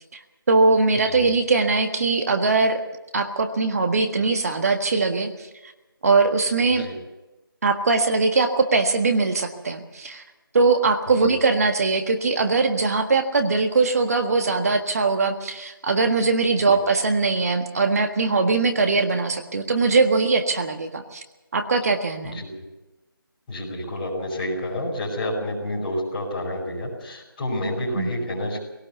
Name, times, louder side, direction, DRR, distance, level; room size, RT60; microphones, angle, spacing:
voice 1, 0.5-2.8 3.1-5.7 6.0-6.9 7.6-10.2 10.5-21.2 21.5-22.4 27.9-28.1, right 3 dB, 40° right, 6 dB, 1.6 m, -21 dB
voice 2, 23.5-28.6, left 1 dB, 20° left, -6 dB, 5.4 m, -29 dB
20.5 x 18.0 x 7.0 m, 1.1 s
figure-of-eight pair, 165°, 12 cm